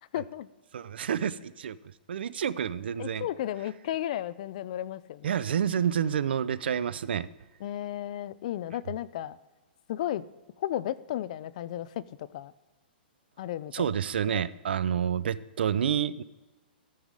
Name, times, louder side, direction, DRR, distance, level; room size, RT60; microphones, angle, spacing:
voice 1, 0.1-0.5 3.0-5.4 7.6-9.4 9.9-10.3 10.6-12.5 13.4-13.9 14.3-14.4, left 12 dB, 45° left, 18 dB, 0.3 m, -34 dB
voice 2, 0.7-1.8 2.1-3.3 5.2-7.3 13.7-16.2, right 8 dB, 75° right, 18 dB, 0.4 m, -29 dB
14.0 x 5.5 x 4.7 m, 1.2 s
hypercardioid pair, 160°, 6 cm